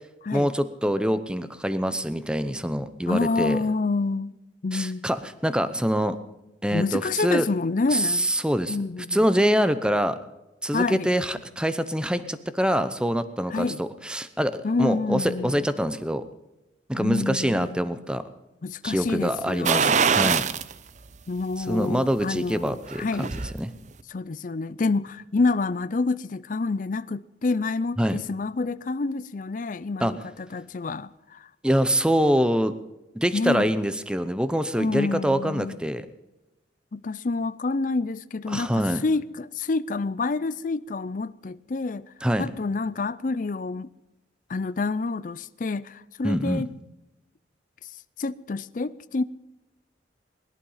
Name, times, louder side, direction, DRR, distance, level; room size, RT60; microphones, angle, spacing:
voice 1, 0.3-3.6 4.7-6.2 6.6-7.5 7.9-8.8 9.1-10.2 10.6-16.2 16.9-18.2 18.8-20.4 21.6-23.7 28.0-28.2 30.0-30.2 31.6-32.7 33.1-36.1 38.5-39.0 42.2-42.5 46.2-46.7, equal, 5° right, 0.8 m, -25 dB
voice 2, 3.1-4.3 4.6-5.1 6.7-8.3 8.7-9.2 10.7-11.1 13.5-13.8 14.6-15.7 16.9-17.8 18.6-20.0 21.3-23.4 24.1-30.2 30.5-31.5 33.3-33.7 34.7-35.8 36.9-42.1 42.4-43.9 44.5-46.7 48.2-49.2, left 3 dB, 45° left, 0.5 m, -28 dB
sound 1, 19.6-20.7 21.1-21.2 22.7-23.5 23.9-24.0, right 6 dB, 40° right, 0.6 m, -22 dB
21.0 x 11.5 x 5.6 m
head